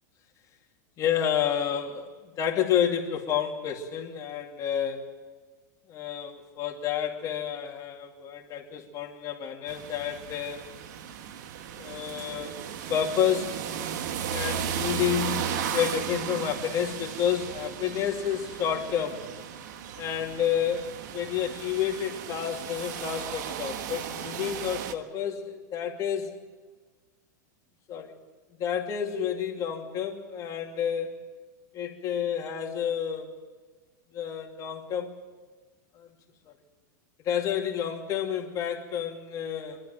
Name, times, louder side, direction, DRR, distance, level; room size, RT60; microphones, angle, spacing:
voice 1, 1.0-5.2 5.9-10.7 11.8-12.6 12.9-13.7 14.3-15.5 15.7-19.3 20.0-26.3 27.9-28.2 28.6-31.4 31.7-33.4 34.1-35.2 35.9-36.1 36.5-36.6 37.2-39.8, left 9 dB, 35° left, 2 dB, 2.7 m, -30 dB
sound 1, 9.7-24.9, right 8 dB, 65° right, 1.4 m, -35 dB
24.0 x 12.5 x 9.2 m, 1.4 s
supercardioid pair, 130°, 10 cm